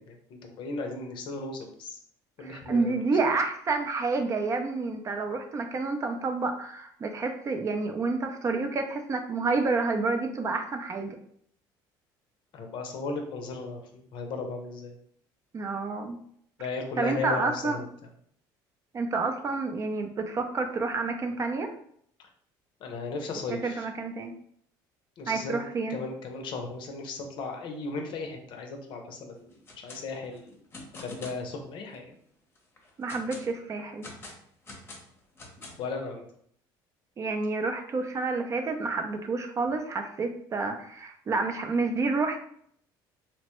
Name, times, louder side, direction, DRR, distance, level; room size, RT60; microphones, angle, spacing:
voice 1, 0.0-2.0 2.4-2.9 12.5-15.0 16.6-17.9 22.8-23.9 25.2-25.6 25.9-30.6 30.9-32.1 35.8-36.3, left 3 dB, 60° left, 3 dB, 0.6 m, -36 dB
voice 2, 2.4-11.2 15.5-16.2 17.0-17.8 18.9-21.7 23.5-24.3 25.3-26.0 33.0-34.1 37.2-42.4, right 3 dB, 35° right, 5 dB, 0.4 m, -29 dB
sound 1, 29.5-30.0 30.3-31.4 31.9-32.0 32.6-33.5 34.0-35.9, left 2 dB, 25° left, 0.7 m, -45 dB
3.0 x 2.1 x 3.0 m, 0.65 s
supercardioid pair, 100°, 9 cm